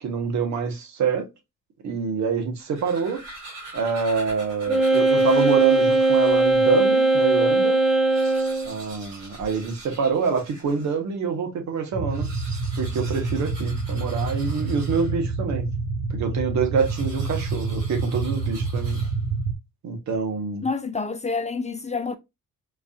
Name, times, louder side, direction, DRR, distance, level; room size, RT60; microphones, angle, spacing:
voice 1, 0.0-1.3 1.8-3.2 3.7-7.8 8.6-12.3 12.8-15.7 16.1-19.0 19.8-20.7, right 5 dB, 65° right, 1.2 m, -26 dB
sound 1, 2.6-6.6 7.2-7.3 7.5-7.6 7.9-11.0 12.0-15.4 16.7-19.4, right 2 dB, 85° right, 2.5 m, -43 dB
Wind instrument woodwind instrument, 4.7-8.7, right 2 dB, ahead, 0.8 m, -19 dB
sound 2, 11.9-19.5, right 3 dB, 40° right, 0.7 m, -28 dB
voice 2, 20.6-22.2, left 4 dB, 25° left, 0.4 m, -28 dB
4.6 x 2.7 x 2.3 m
cardioid pair, 90°, 30 cm